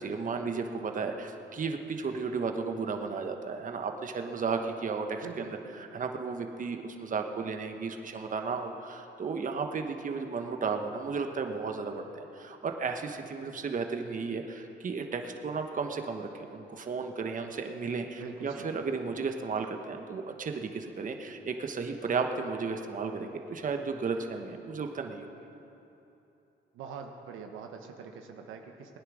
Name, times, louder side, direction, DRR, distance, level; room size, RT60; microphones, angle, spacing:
voice 1, 0.0-25.3, right 4 dB, 40° right, 5 dB, 1.2 m, -34 dB
voice 2, 5.2-6.1 18.2-18.8 26.7-29.0, right 6 dB, 90° right, 4 dB, 1.1 m, -44 dB
18.0 x 9.9 x 6.3 m, 3.0 s
cardioid pair, 90°, 20 cm